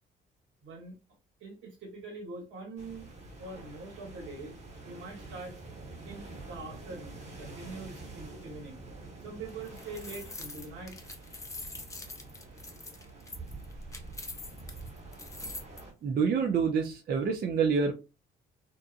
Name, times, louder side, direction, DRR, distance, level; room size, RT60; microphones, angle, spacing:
voice 1, 0.6-0.9 1.4-3.1 3.4-4.6 4.8-5.6 6.0-8.8 9.2-11.1, right 3 dB, 75° right, 1 dB, 1.3 m, -43 dB
sound 1, 2.8-15.9, right 2 dB, 35° right, 1.1 m, -47 dB
sound 2, 9.5-15.8, left 2 dB, 15° left, 0.6 m, -44 dB
voice 2, 16.0-17.9, right 5 dB, 50° right, 2 dB, 0.5 m, -27 dB
2.6 x 2.5 x 2.4 m, 0.28 s
cardioid pair, 90°, 20 cm